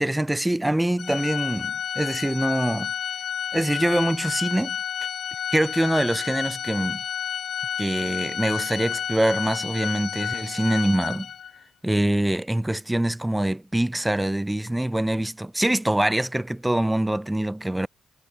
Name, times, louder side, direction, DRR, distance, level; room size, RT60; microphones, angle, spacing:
voice 1, 0.0-2.9 3.5-4.8 5.5-7.0 7.8-11.3 11.8-17.9, right 1 dB, 10° right, 0.4 m, -24 dB
Organ, 1.0-11.6, left 8 dB, 60° left, 0.6 m, -31 dB
cardioid pair, 90°, 0 cm